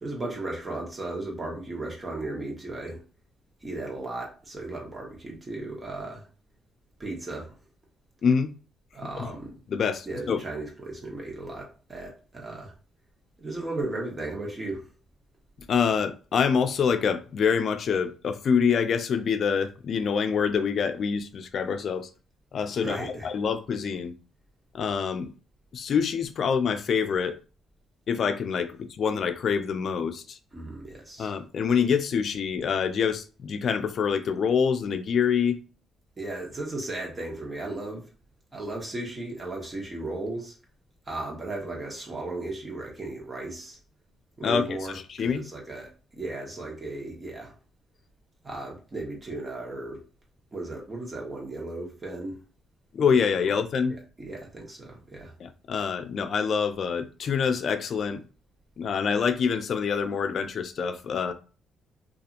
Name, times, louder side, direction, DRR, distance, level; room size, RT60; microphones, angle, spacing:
voice 1, 0.0-3.0 3.6-6.3 7.0-7.5 8.9-9.6 10.1-12.7 13.4-14.9 22.8-23.3 30.5-31.3 36.2-38.1 38.5-40.6 41.1-43.8 44.4-47.6 48.4-50.0 50.5-52.4 54.2-55.3, right 2 dB, 25° right, 1.1 m, -35 dB
voice 2, 8.2-8.5 9.2-9.3 9.7-10.4 15.7-22.1 22.5-24.1 24.7-25.3 25.7-27.4 28.1-30.4 31.2-35.6 44.4-44.8 45.1-45.4 52.9-54.0 55.4-58.2 58.8-61.3, left 6 dB, 55° left, 0.3 m, -26 dB
2.7 x 2.5 x 2.4 m
cardioid pair, 90°, 0 cm